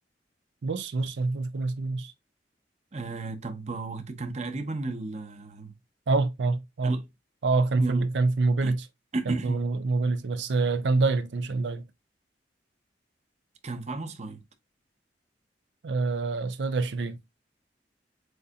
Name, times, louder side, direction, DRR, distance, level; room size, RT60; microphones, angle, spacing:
voice 1, 0.6-2.1 6.1-7.0 7.4-8.9 9.3-11.8 15.8-17.2, right 3 dB, 90° right, 0.5 m, -26 dB
voice 2, 2.9-5.7 6.8-7.0 7.7-8.2 8.6-8.7 9.1-9.6 13.6-14.4, right 3 dB, 40° right, 0.7 m, -34 dB
7.8 x 2.7 x 2.4 m
head